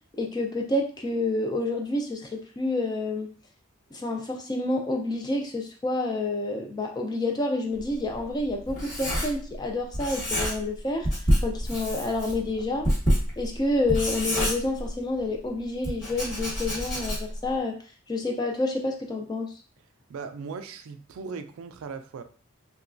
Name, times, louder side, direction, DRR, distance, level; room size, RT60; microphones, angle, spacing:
voice 1, 0.2-3.3 3.9-11.1 11.4-12.9 13.4-17.8 18.1-19.6, left 2 dB, 20° left, 2 dB, 0.3 m, -28 dB
Writing, 7.8-9.7 9.9-10.8 11.0-15.2 15.8-17.5, equal, 35° left, 1.2 m, -27 dB
voice 2, 20.1-22.2, right 5 dB, 75° right, 9 dB, 0.3 m, -38 dB
3.0 x 2.2 x 2.4 m, 0.41 s
head